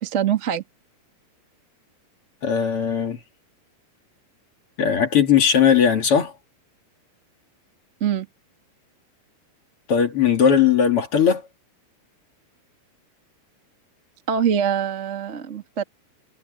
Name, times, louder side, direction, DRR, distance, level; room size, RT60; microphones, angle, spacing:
voice 1, 0.0-0.6 8.0-8.3 14.3-15.8, right 8 dB, 50° right, 0.8 m, -23 dB
voice 2, 2.4-3.2 4.8-6.3 9.9-11.4, left 7 dB, 40° left, 2.2 m, -18 dB
omnidirectional pair, 5.1 m